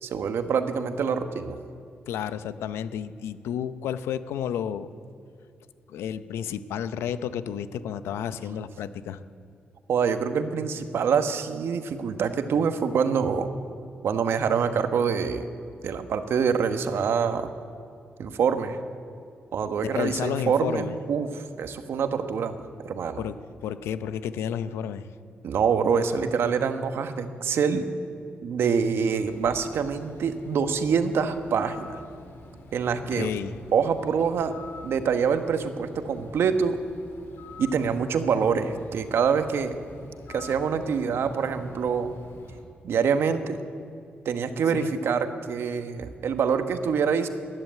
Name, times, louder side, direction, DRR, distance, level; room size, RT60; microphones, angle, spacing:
voice 1, 0.0-1.6 9.9-13.5 14.0-15.5 15.8-17.5 18.2-18.8 19.5-23.2 25.4-27.8 28.4-32.0 32.7-33.3 33.7-34.5 34.8-36.8 37.6-39.7 40.3-42.1 42.8-43.6 44.2-47.3, right 6 dB, 75° right, 8 dB, 1.1 m, -25 dB
voice 2, 2.1-4.9 5.9-9.2 19.9-21.0 23.2-23.4 23.6-25.1 33.1-33.6 44.7-44.9, left 9 dB, 90° left, 13 dB, 0.6 m, -31 dB
Bird, 29.1-42.6, left 2 dB, 75° left, 2.7 m, -47 dB
14.0 x 11.0 x 9.3 m, 2.4 s
cardioid pair, 60°, 4 cm